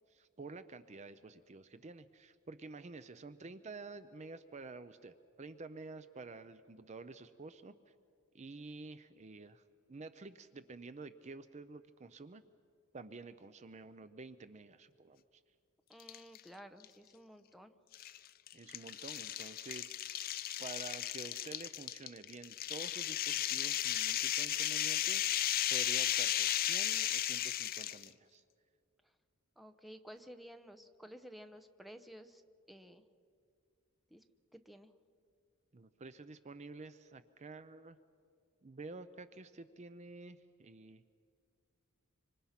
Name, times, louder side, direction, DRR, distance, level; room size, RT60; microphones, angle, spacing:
voice 1, 0.1-7.9 8.3-9.6 9.9-12.4 12.9-15.4 18.5-20.2 20.6-28.4 35.7-38.0 38.6-41.0, right 3 dB, 30° right, 12 dB, 0.5 m, -50 dB
voice 2, 15.9-17.7 29.6-32.4 32.7-33.0 34.1-34.2 34.5-34.9, equal, ahead, 8 dB, 0.8 m, -53 dB
sound 1, 16.0-16.4 16.8-16.9 17.9-28.1, left 12 dB, 40° left, 0.5 m, -35 dB
26.0 x 25.0 x 5.8 m, 2.3 s
head